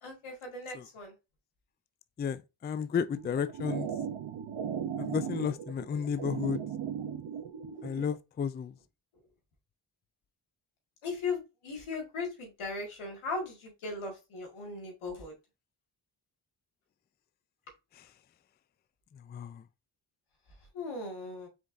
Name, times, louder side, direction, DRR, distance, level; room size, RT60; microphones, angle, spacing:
voice 1, 0.0-1.1 5.4-5.5 11.0-15.3 20.7-21.5, left 3 dB, 85° left, 2.3 m, -38 dB
voice 2, 2.2-3.9 5.0-6.6 7.8-8.7 19.3-19.6, left 7 dB, 25° left, 0.3 m, -32 dB
sound 1, 3.2-8.1, right 8 dB, 75° right, 1.0 m, -37 dB
5.2 x 3.7 x 2.6 m
cardioid pair, 65°, 48 cm